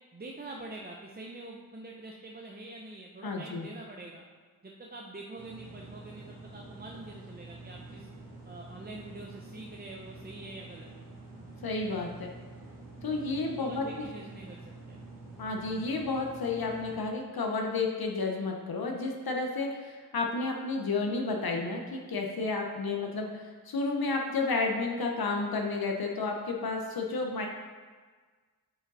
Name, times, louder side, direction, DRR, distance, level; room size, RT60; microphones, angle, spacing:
voice 1, 0.1-4.2 4.6-8.1 8.4-10.9 13.0-13.2 13.6-15.0, right 2 dB, 25° right, -1 dB, 0.7 m, -45 dB
voice 2, 3.2-3.7 11.6-12.3 13.0-13.8 15.4-27.5, left 3 dB, 75° left, 1 dB, 0.8 m, -31 dB
sound 1, 5.3-17.0, right 2 dB, 65° right, 2.4 m, -47 dB
8.6 x 5.0 x 4.0 m, 1.5 s
wide cardioid pair, 80°, 36 cm